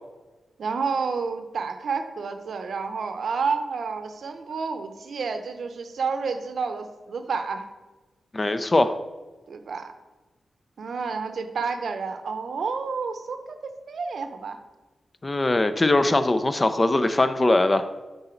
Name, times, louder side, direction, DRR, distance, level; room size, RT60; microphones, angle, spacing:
voice 1, 0.6-7.7 9.5-9.9 10.8-14.6, right 5 dB, 70° right, 8 dB, 0.6 m, -30 dB
voice 2, 8.3-8.9 15.2-17.9, left 2 dB, 30° left, 10 dB, 0.5 m, -21 dB
7.7 x 4.0 x 4.4 m, 1.2 s
cardioid pair, 70°, 0 cm